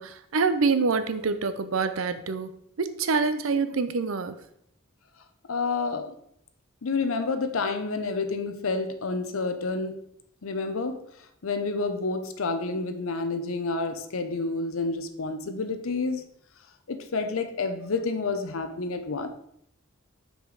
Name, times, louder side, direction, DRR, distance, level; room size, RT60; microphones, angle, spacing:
voice 1, 0.0-2.5 2.8-4.4, right 4 dB, 75° right, 11 dB, 0.6 m, -26 dB
voice 2, 5.5-6.1 6.8-10.0 10.4-11.0 11.4-16.2 16.9-19.3, left 3 dB, 85° left, 8 dB, 0.7 m, -29 dB
6.0 x 5.0 x 3.9 m, 0.72 s
head